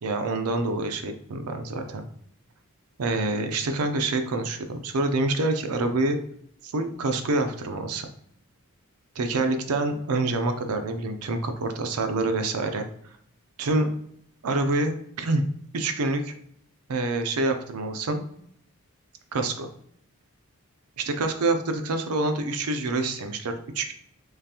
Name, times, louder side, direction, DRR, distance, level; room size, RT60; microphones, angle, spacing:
voice 1, 0.0-2.0 3.0-6.2 6.6-8.1 9.2-12.8 13.6-13.9 14.4-15.4 15.7-16.4 16.9-18.2 19.3-19.7 21.0-23.9, right 2 dB, 70° right, 6 dB, 0.5 m, -26 dB
3.7 x 3.2 x 2.8 m, 0.68 s
head